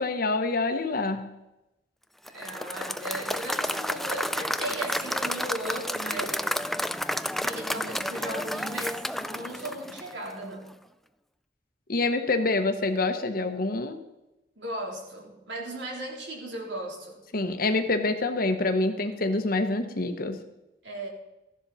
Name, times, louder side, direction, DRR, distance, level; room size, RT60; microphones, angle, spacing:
voice 1, 0.0-1.3 11.9-14.0 17.3-20.4, left 2 dB, 55° left, 8 dB, 1.1 m, -26 dB
Applause / Crowd, 2.3-10.4, equal, ahead, 0.3 m, -31 dB
voice 2, 2.3-6.5 7.4-10.7 14.6-17.2 20.8-21.1, right 1 dB, 80° right, -1 dB, 3.5 m, -36 dB
15.0 x 11.5 x 4.2 m, 0.94 s
head